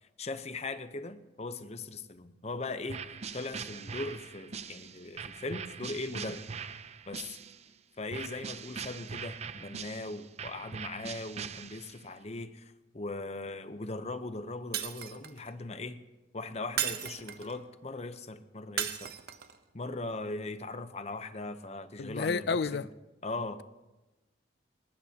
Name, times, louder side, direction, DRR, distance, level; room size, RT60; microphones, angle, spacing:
voice 1, 0.0-3.0 3.3-6.4 7.1-7.4 8.0-16.0 16.3-19.1 19.7-22.9 23.2-23.6, left 2 dB, 35° left, 0.8 m, -39 dB
sound 1, 2.9-7.7 8.1-12.1, right 6 dB, 35° right, 0.5 m, -42 dB
Shatter, 14.7-15.5 16.8-17.6 18.8-19.6, right 10 dB, 55° right, 0.8 m, -35 dB
voice 2, 22.0-22.9, left 4 dB, 60° left, 0.4 m, -30 dB
20.5 x 19.0 x 2.9 m
head